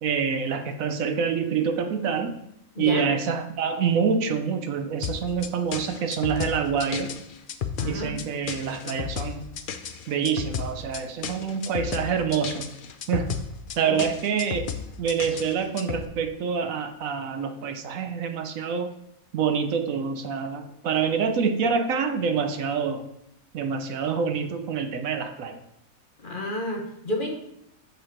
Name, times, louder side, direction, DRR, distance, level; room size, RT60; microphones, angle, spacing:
voice 1, 0.0-2.3 2.8-7.1 7.8-9.4 10.1-12.7 13.1-13.3 13.8-14.7 15.0-18.9 19.3-23.0 23.5-25.6, right 6 dB, 70° right, 7 dB, 1.1 m, -26 dB
voice 2, 2.7-3.1 7.8-8.1 13.8-14.0 14.4-14.5 26.2-27.3, left 1 dB, 40° left, 0 dB, 1.1 m, -31 dB
sound 1, 5.0-16.0, left 7 dB, 60° left, 0.5 m, -33 dB
6.8 x 5.4 x 4.5 m, 0.79 s
omnidirectional pair, 1.5 m